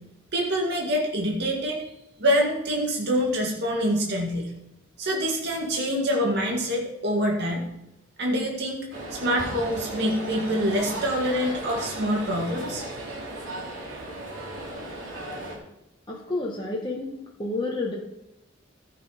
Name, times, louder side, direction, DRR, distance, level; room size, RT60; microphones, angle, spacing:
voice 1, 0.3-1.8 2.2-4.5 5.0-7.7 8.2-13.0, equal, 60° right, -1 dB, 2.1 m, -26 dB
sound 1, 8.9-15.6, right 1 dB, 85° right, 3.0 m, -36 dB
voice 2, 16.1-17.1 17.4-18.0, left 2 dB, 25° left, -3 dB, 1.4 m, -29 dB
13.5 x 6.1 x 5.0 m, 0.86 s
head